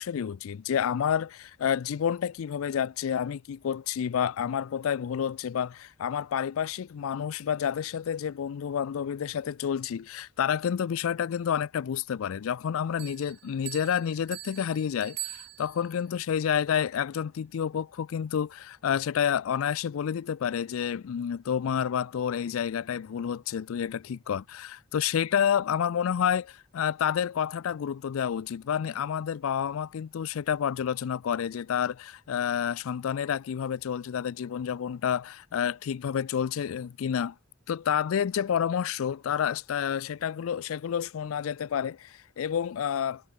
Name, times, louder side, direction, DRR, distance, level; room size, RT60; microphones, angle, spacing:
voice 1, 0.0-37.3 37.7-43.2, left 8 dB, 80° left, 0.4 m, -29 dB
sound 1, 13.0-16.0, right 15 dB, 50° right, 1.3 m, -42 dB
head